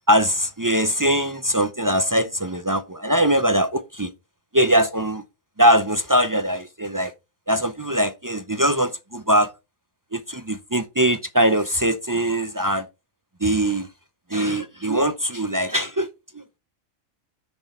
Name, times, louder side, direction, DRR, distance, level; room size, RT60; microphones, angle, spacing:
voice 1, 0.1-4.1 4.5-5.2 5.6-7.1 7.5-9.5 10.1-12.9 13.4-13.9 14.3-16.1 16.3-16.6, right 1 dB, 30° right, 0.3 m, -21 dB
6.9 x 6.7 x 4.3 m
omnidirectional pair, 1.4 m